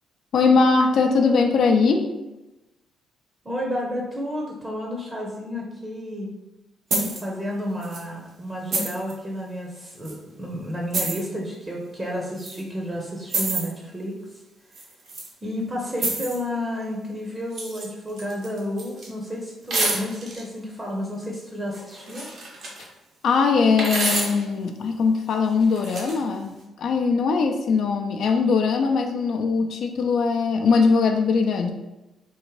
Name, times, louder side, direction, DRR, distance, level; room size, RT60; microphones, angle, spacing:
voice 1, 0.3-2.1 23.2-31.7, left 4 dB, 65° left, 4 dB, 0.4 m, -21 dB
voice 2, 3.4-6.3 7.0-14.1 15.4-22.3, equal, 25° right, -1 dB, 0.7 m, -31 dB
sound 1, 6.9-7.2 7.8-8.0 8.7-9.1 10.0-10.1 10.9-11.2 12.4-12.6 13.3-13.7 14.7-15.3 15.9-16.4 17.5-17.9 18.2-19.1 19.7-20.4 21.7-22.9 23.8-24.4 25.6-26.2, right 2 dB, 65° right, 0.9 m, -28 dB
3.6 x 2.5 x 3.1 m, 0.99 s
cardioid pair, 90°, 0 cm